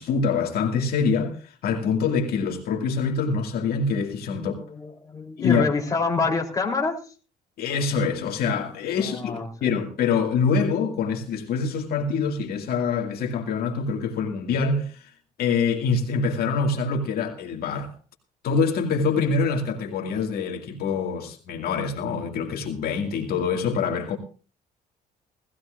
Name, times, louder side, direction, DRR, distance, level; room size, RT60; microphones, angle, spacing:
voice 1, 0.0-4.5 5.4-5.7 7.6-9.3 9.6-15.1 15.4-17.9 18.4-24.2, left 5 dB, 65° left, 2.2 m, -25 dB
voice 2, 4.3-7.0 9.0-9.7, left 4 dB, 20° left, 3.4 m, -27 dB
18.5 x 16.0 x 2.5 m
cardioid pair, 110°, 17 cm